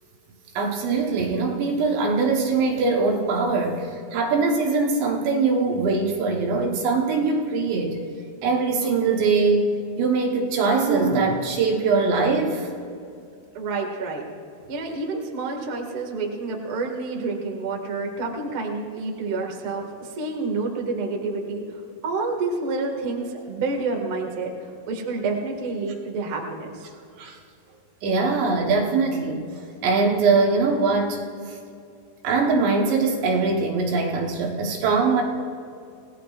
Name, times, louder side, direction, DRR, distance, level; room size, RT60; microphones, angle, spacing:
voice 1, 0.6-8.0 8.4-9.7 10.0-12.7 27.2-27.4 28.0-29.5 29.8-31.2 31.4-31.6 32.2-35.2, right 4 dB, 70° right, 0 dB, 3.2 m, -22 dB
voice 2, 13.5-14.2 14.7-21.6 22.0-24.5 24.9-26.9, right 3 dB, 50° right, 0 dB, 1.7 m, -28 dB
29.0 x 17.5 x 2.5 m, 2.5 s
omnidirectional pair, 5.7 m